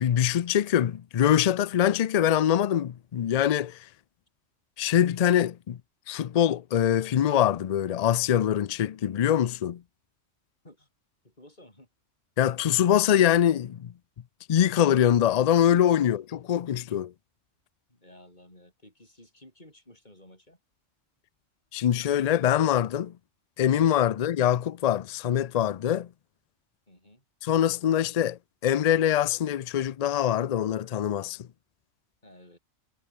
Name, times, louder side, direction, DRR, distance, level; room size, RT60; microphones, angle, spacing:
voice 1, 0.0-3.8 4.8-5.8 6.1-9.8 12.4-13.9 14.5-17.1 21.7-23.1 23.6-26.1 27.4-31.4, left 10 dB, 80° left, 0.3 m, -24 dB
voice 2, 11.2-11.9 17.9-20.6 24.1-24.2 26.9-27.2 32.2-32.6, left 1 dB, 35° left, 7.3 m, -54 dB
omnidirectional pair, 1.3 m